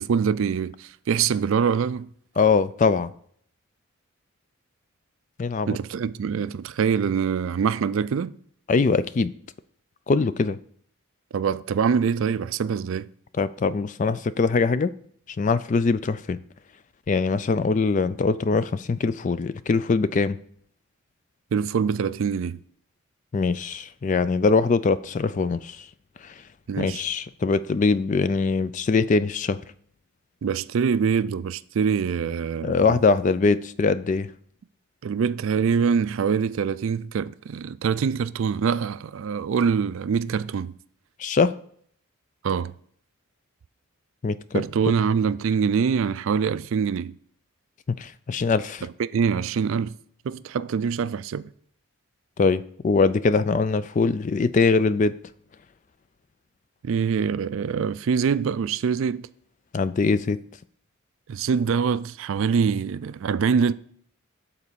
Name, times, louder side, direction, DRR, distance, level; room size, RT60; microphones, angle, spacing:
voice 1, 0.0-2.1 5.7-8.3 11.3-13.1 21.5-22.6 26.7-27.0 30.4-32.8 35.0-40.7 42.4-42.7 44.5-47.2 49.0-49.9 50.2-51.5 56.8-59.3 61.3-63.7, right 6 dB, 65° right, 0.3 m, -24 dB
voice 2, 2.4-3.1 5.4-5.8 8.7-9.3 10.1-10.6 13.4-14.9 15.4-16.4 17.1-20.4 23.3-25.9 26.2-26.3 26.8-29.6 32.6-34.3 41.2-41.6 44.2-44.6 48.0-48.9 52.4-55.2 59.7-60.4, left 4 dB, 35° left, 0.3 m, -22 dB
8.3 x 4.1 x 6.8 m
head